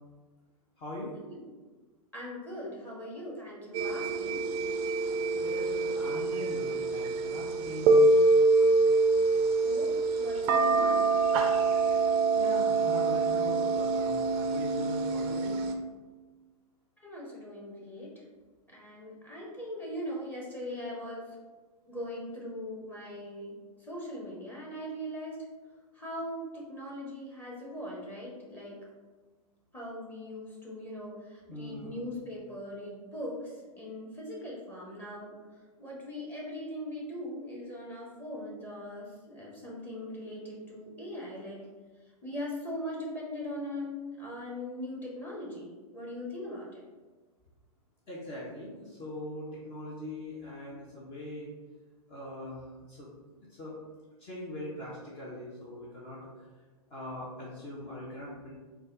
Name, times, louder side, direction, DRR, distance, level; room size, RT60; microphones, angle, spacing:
voice 1, 0.8-1.2 5.3-8.1 12.4-15.6 31.5-32.0 48.1-51.5 52.1-53.1 53.5-53.7 54.2-56.2 56.9-58.5, left 1 dB, 30° left, -6 dB, 0.8 m, -41 dB
voice 2, 2.1-4.4 9.6-9.9 10.2-11.1 12.8-13.0 17.0-18.1 18.7-21.4 21.9-25.4 25.9-28.8 29.7-35.3 35.8-41.6 42.2-46.7, left 1 dB, 10° left, -4 dB, 1.1 m, -40 dB
sound 1, 3.7-15.7, right 3 dB, 30° right, 0.4 m, -25 dB
3.9 x 2.3 x 3.8 m, 1.3 s
hypercardioid pair, 120°, 20 cm